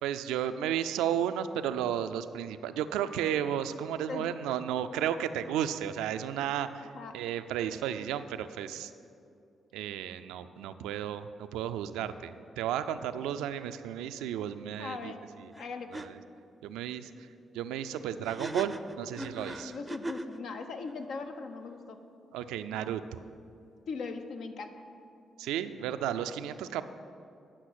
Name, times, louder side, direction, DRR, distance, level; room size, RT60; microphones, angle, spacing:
voice 1, 0.0-8.9 9.7-15.5 15.9-16.2 16.6-17.3 17.5-19.7 22.3-23.2 25.4-26.8, right 10 dB, 90° right, 11 dB, 0.4 m, -33 dB
voice 2, 14.8-15.2 15.6-16.1 19.6-22.0 23.9-24.9, left 4 dB, 70° left, 7 dB, 0.8 m, -39 dB
sound 1, 15.5-15.7 15.9-16.1 18.2-20.4, right 1 dB, 15° right, 0.5 m, -38 dB
10.0 x 5.9 x 6.3 m, 2.6 s
supercardioid pair, 55°, 0 cm